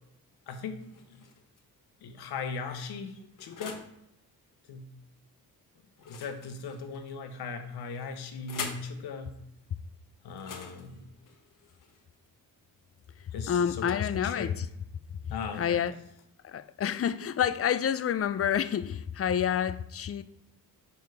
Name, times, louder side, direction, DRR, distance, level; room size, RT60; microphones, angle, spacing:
voice 1, 0.5-0.8 1.1-1.2 2.0-3.9 4.7-4.9 6.0-9.4 10.2-11.1 13.3-14.5 15.3-15.8, left 5 dB, 85° left, 1.0 m, -38 dB
sound 1, 0.8-1.6 2.3-4.0 6.0-7.1 7.9-8.9 10.3-12.3, left 5 dB, 55° left, 1.2 m, -44 dB
voice 2, 13.5-14.7 15.2-15.9 16.4-20.2, left 8 dB, 40° left, 0.5 m, -28 dB
5.6 x 4.6 x 4.8 m
cardioid pair, 80°, 38 cm